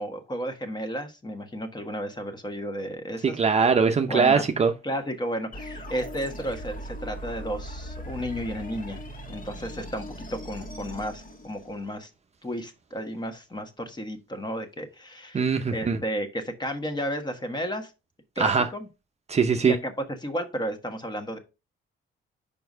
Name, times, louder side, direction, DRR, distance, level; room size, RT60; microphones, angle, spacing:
voice 1, 0.0-3.4 4.1-4.5 4.8-10.0 10.3-12.1 12.4-15.4 15.7-17.9 18.3-18.9 19.6-19.9 20.2-21.4, equal, 20° left, 1.4 m, -33 dB
voice 2, 3.2-4.7 15.3-16.0 18.4-18.7 19.3-19.8, right 5 dB, 35° right, 0.7 m, -21 dB
sound 1, 5.5-12.0, equal, 45° left, 1.9 m, -39 dB
5.3 x 4.5 x 5.4 m
cardioid pair, 90°, 20 cm